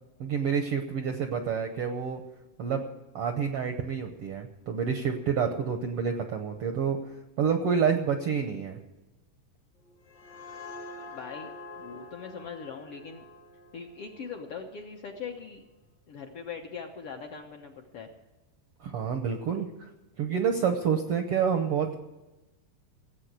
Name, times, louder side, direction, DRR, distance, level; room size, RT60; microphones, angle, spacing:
voice 1, 0.2-2.2 2.6-2.8 3.1-7.0 7.4-8.8 18.8-19.9 20.2-22.0, right 7 dB, 70° right, 6 dB, 1.4 m, -28 dB
sound 1, 9.8-15.3, left 3 dB, 45° left, 1.5 m, -46 dB
voice 2, 11.0-13.3 13.7-15.6 16.1-18.1, left 6 dB, 60° left, 2 dB, 1.6 m, -41 dB
16.5 x 8.4 x 8.2 m, 1.1 s
omnidirectional pair, 3.8 m